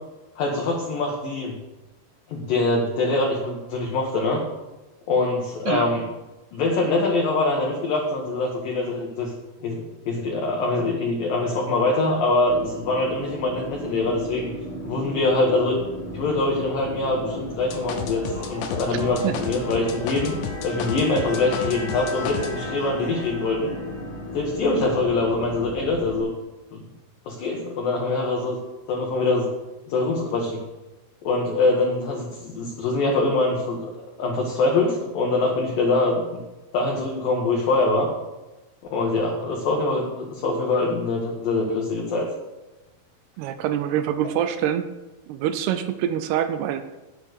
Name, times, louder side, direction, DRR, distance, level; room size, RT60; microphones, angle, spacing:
voice 1, 0.4-1.5 2.3-4.4 5.1-6.1 6.5-9.3 9.6-14.5 14.8-15.8 16.1-20.4 20.6-23.7 24.3-26.3 26.7-26.8 27.3-28.6 28.9-29.5 29.9-30.6 31.2-33.9 34.2-36.2 36.7-38.1 38.9-42.3, left 2 dB, 65° left, -1 dB, 2.6 m, -24 dB
sound 1, 12.5-26.2, left 1 dB, 30° left, 3.1 m, -34 dB
sound 2, 17.7-22.5, left 7 dB, 80° left, 3.3 m, -32 dB
voice 2, 43.4-44.9 45.3-47.0, right 10 dB, 80° right, 10 dB, 2.4 m, -25 dB
10.0 x 8.0 x 6.6 m, 1.1 s
omnidirectional pair, 5.3 m